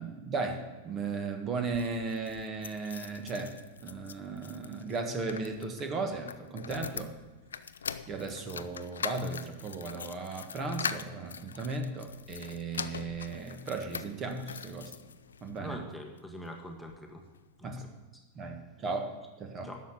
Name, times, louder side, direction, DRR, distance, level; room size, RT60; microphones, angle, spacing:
voice 1, 0.0-3.5 3.8-7.1 8.1-14.9 15.4-15.8 17.6-17.8 18.3-19.7, right 3 dB, 30° right, 5 dB, 1.5 m, -36 dB
sound 1, 1.6-15.6 16.2-17.0 17.3-17.4 17.7-17.8, left 6 dB, 70° left, 0.5 m, -42 dB
voice 2, 15.6-17.3 17.6-18.2 19.6-19.8, left 1 dB, ahead, 1 dB, 1.3 m, -44 dB
11.5 x 6.8 x 7.5 m, 1.1 s
figure-of-eight pair, 90°, 0 cm